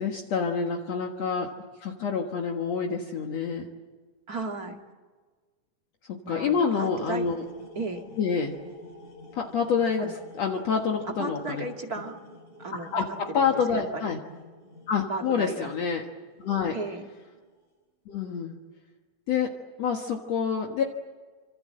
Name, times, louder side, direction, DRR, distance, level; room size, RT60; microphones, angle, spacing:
voice 1, 0.0-1.5 1.8-3.7 6.1-7.4 8.2-8.5 9.3-10.1 10.4-11.6 12.7-14.2 14.9-16.1 16.4-16.8 18.1-18.6 19.3-19.5 19.8-20.8, left 6 dB, 60° left, 2 dB, 2.6 m, -27 dB
voice 2, 4.3-4.8 6.2-7.2 7.8-8.1 10.0-10.1 11.2-12.2 12.6-14.1 15.1-15.7 16.7-17.0, right 3 dB, 30° right, 4 dB, 2.2 m, -35 dB
sound 1, 6.7-17.6, left 2 dB, 80° left, 9.4 m, -50 dB
27.5 x 26.0 x 7.8 m, 1.4 s
omnidirectional pair, 3.7 m